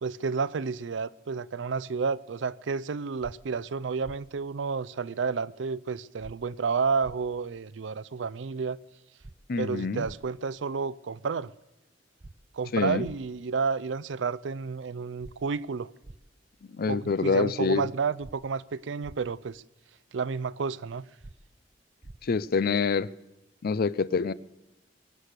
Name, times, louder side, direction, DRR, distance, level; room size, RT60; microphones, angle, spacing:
voice 1, 0.0-8.8 9.6-11.5 12.5-15.9 16.9-19.6 20.1-21.1, right 5 dB, 90° right, 0.5 m, -31 dB
sound 1, 3.2-3.3 4.0-4.2 6.2-6.4 7.0-7.2 9.2-9.4 10.0-10.2 12.2-12.3 13.0-13.2 15.2-15.3 16.0-16.2 18.2-18.4 19.0-19.2 21.2-21.3 22.0-22.2, right 2 dB, 25° right, 0.5 m, -45 dB
voice 2, 9.5-10.1 12.7-13.1 16.7-17.9 22.2-23.1 23.6-24.3, left 5 dB, 55° left, 0.5 m, -26 dB
23.5 x 8.3 x 6.6 m
head